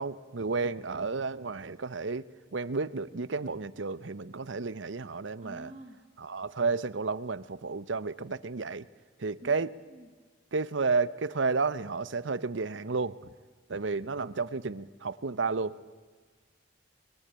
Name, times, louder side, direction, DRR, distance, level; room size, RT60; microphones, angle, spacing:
voice 1, 0.0-5.7 6.2-8.9 9.2-9.7 10.5-13.2 13.7-15.8, right 4 dB, 70° right, 16 dB, 0.8 m, -32 dB
voice 2, 5.4-6.0 9.4-10.1, right 1 dB, 35° right, 0 dB, 2.2 m, -48 dB
23.0 x 22.5 x 8.9 m, 1.5 s
head